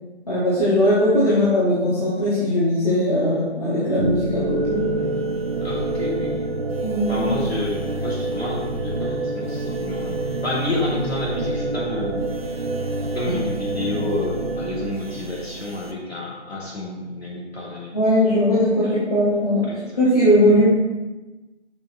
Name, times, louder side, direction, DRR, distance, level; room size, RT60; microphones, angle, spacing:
voice 1, 0.3-4.9 6.8-7.3 17.9-19.7 20.0-20.6, equal, 35° left, -8 dB, 1.5 m, -19 dB
sound 1, 4.0-15.9, right 2 dB, 60° right, 0.7 m, -27 dB
voice 2, 5.6-6.5 7.1-10.1 10.4-12.3 13.1-18.0 18.8-18.9 19.7-19.9 20.5-20.6, left 2 dB, 60° left, -5 dB, 2.7 m, -29 dB
7.2 x 5.8 x 4.2 m, 1.1 s
figure-of-eight pair, 165°, 35 cm